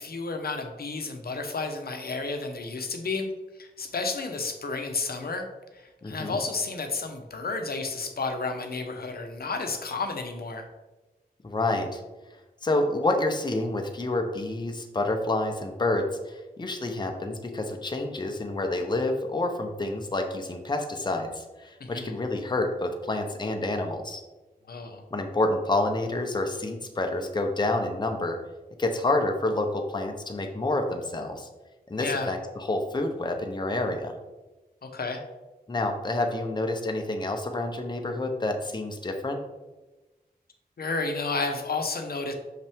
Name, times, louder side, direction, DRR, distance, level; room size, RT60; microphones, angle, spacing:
voice 1, 0.0-3.3 3.6-5.4 5.7-10.7 21.8-22.1 24.7-25.0 32.0-32.3 34.8-35.2 40.8-42.3, left 3 dB, 70° left, 4 dB, 0.8 m, -31 dB
voice 2, 6.0-6.4 11.4-12.0 12.6-24.2 25.1-28.4 28.8-31.5 31.9-34.1 35.7-39.4, left 2 dB, 25° left, 3 dB, 0.7 m, -28 dB
5.9 x 5.5 x 3.5 m, 1.1 s
wide cardioid pair, 115°, 16 cm